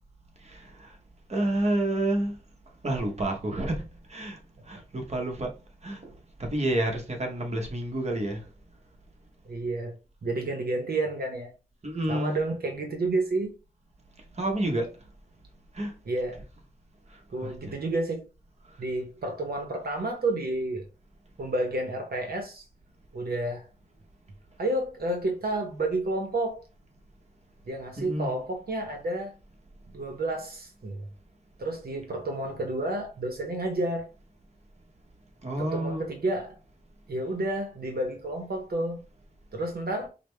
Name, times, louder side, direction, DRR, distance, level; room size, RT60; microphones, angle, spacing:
voice 1, 0.4-1.0 1.3-2.4 2.8-5.5 5.8-8.5 11.8-12.3 14.3-15.0 15.7-16.0 17.1-17.7 18.6-18.8 28.0-28.3 35.4-36.1, right 1 dB, 45° right, 1.0 m, -30 dB
voice 2, 9.5-10.0 10.2-11.5 12.1-13.6 16.0-16.4 17.3-18.3 18.8-20.9 21.4-22.6 23.1-23.7 24.6-26.6 27.7-29.3 29.9-31.1 31.6-34.1 35.6-36.6 37.1-39.0 39.5-40.1, right 2 dB, 80° right, 0.8 m, -30 dB
5.1 x 2.1 x 3.2 m
wide cardioid pair, 90°, 16 cm